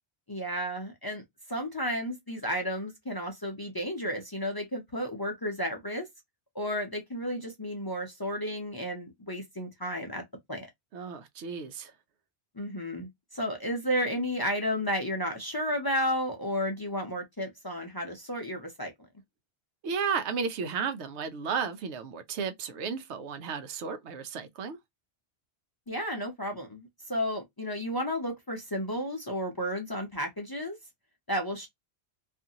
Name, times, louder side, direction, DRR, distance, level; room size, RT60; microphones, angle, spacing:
voice 1, 0.3-1.2 1.5-6.1 6.5-10.2 10.5-10.7 12.6-18.9 25.9-30.8 31.3-31.7, equal, 25° left, 0.5 m, -32 dB
voice 2, 10.9-11.9 19.8-24.8, right 6 dB, 85° right, 0.9 m, -33 dB
2.6 x 2.5 x 2.7 m
omnidirectional pair, 1.1 m